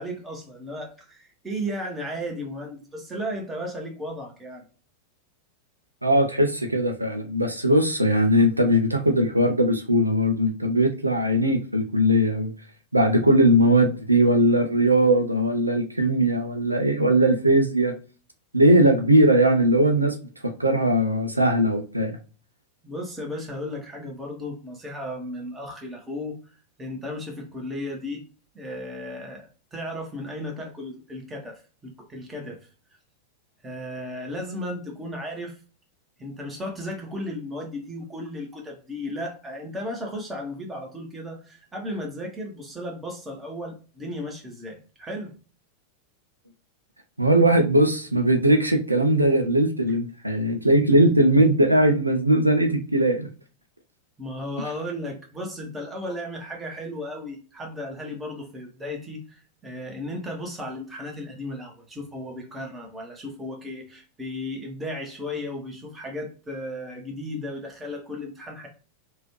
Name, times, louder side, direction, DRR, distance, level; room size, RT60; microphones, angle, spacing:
voice 1, 0.0-4.6 22.8-26.4 26.8-28.2 28.5-32.6 33.6-35.6 36.2-45.3 54.2-68.7, left 1 dB, 15° right, 0 dB, 1.2 m, -35 dB
voice 2, 6.0-12.5 12.9-17.9 18.5-20.1 20.6-22.1 47.2-53.3, right 1 dB, 85° right, 5 dB, 0.5 m, -20 dB
3.1 x 2.5 x 3.0 m, 0.36 s
figure-of-eight pair, 90°, 0 cm